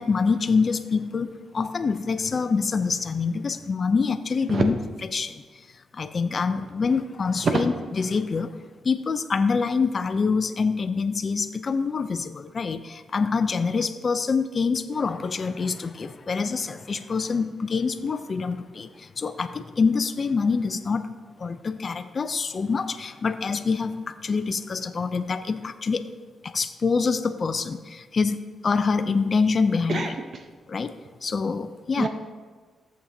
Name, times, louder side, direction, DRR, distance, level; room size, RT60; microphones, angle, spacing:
voice 1, 0.0-4.8 5.1-5.4 5.9-8.5 8.8-21.1 21.4-26.0 26.4-30.1 30.7-30.9 31.2-32.1, left 5 dB, 40° left, 9 dB, 0.5 m, -25 dB
voice 2, 29.9-30.4 32.0-32.1, right 4 dB, 50° right, 5 dB, 0.8 m, -26 dB
14.0 x 7.3 x 2.7 m, 1.4 s
cardioid pair, 105°, 0 cm